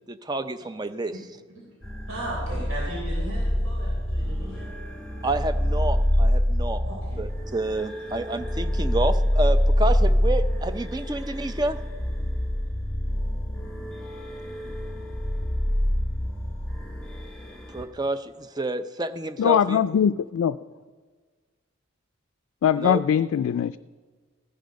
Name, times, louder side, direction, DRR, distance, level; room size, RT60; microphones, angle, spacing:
voice 1, 0.1-1.1 5.2-6.8 7.2-11.8 17.7-19.9 22.8-23.0, right 2 dB, 20° right, 11 dB, 0.5 m, -29 dB
sound 1, 1.8-17.8, equal, 5° left, 1.8 m, -26 dB
voice 2, 2.1-4.7 6.8-7.2 8.1-8.3 10.0-10.1, right 1 dB, 85° right, -4 dB, 3.9 m, -37 dB
voice 3, 19.4-20.6 22.6-23.8, left 8 dB, 90° left, 13 dB, 0.3 m, -21 dB
16.0 x 10.5 x 5.2 m, 1.5 s
head